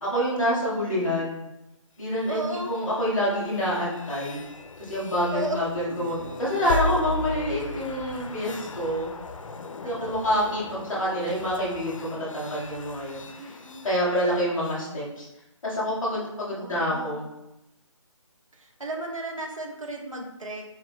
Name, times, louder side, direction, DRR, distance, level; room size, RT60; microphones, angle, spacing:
voice 1, 0.0-1.4 2.0-4.4 4.8-9.1 9.8-13.6 13.8-15.3 15.6-17.2, equal, 5° left, -18 dB, 0.5 m, -27 dB
voice 2, 0.6-1.2 2.3-2.7 5.3-5.7 9.8-10.7 13.4-13.8 16.4-17.2 18.5-20.6, right 1 dB, 80° right, 0 dB, 1.2 m, -35 dB
sound 1, 2.0-14.9, left 2 dB, 75° left, 0.5 m, -37 dB
sound 2, 6.0-9.7, equal, 50° right, 1.0 m, -42 dB
4.3 x 4.2 x 2.2 m, 0.92 s
hypercardioid pair, 175°, 17 cm